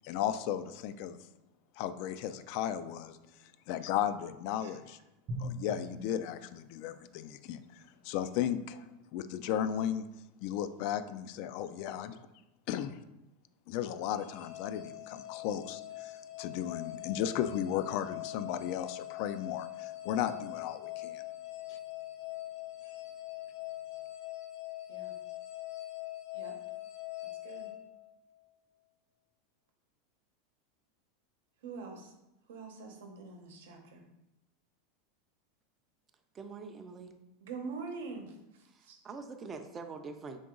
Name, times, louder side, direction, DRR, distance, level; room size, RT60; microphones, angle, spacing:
voice 1, 0.0-1.2 1.8-3.2 3.7-5.0 5.4-8.8 9.1-10.0 10.4-12.2 12.7-13.0 13.7-21.2 21.7-21.8, left 10 dB, 55° left, 11 dB, 0.3 m, -35 dB
Drum, 5.3-8.2, equal, 40° right, 0.9 m, -44 dB
sound 1, 14.1-28.5, left 16 dB, 80° left, 1.1 m, -43 dB
voice 2, 31.6-32.1 32.5-34.0 37.4-38.3 38.8-39.0, right 4 dB, 85° right, 3 dB, 0.8 m, -44 dB
voice 3, 36.3-37.2 38.7-40.4, right 4 dB, 25° right, 6 dB, 0.4 m, -44 dB
3.9 x 2.9 x 3.7 m, 0.91 s
supercardioid pair, 130°, 0 cm